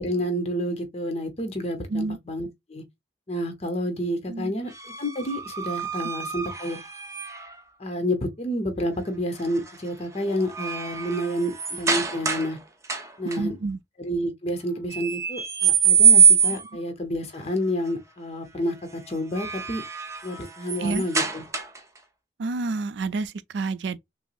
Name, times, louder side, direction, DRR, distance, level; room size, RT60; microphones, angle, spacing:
voice 1, 0.0-2.8 3.3-4.7 5.0-6.8 7.8-12.6 13.2-13.6 14.0-19.8 20.2-21.4, equal, 35° left, 0.9 m, -29 dB
sound 1, 4.7-7.6 9.4-9.7 10.1-12.6 12.8-13.4 14.9-16.8 19.1-22.0, right 6 dB, 15° right, 0.5 m, -24 dB
voice 2, 13.4-13.8 20.8-21.1 22.4-24.0, right 3 dB, 85° right, 0.4 m, -28 dB
6.0 x 2.0 x 2.4 m
head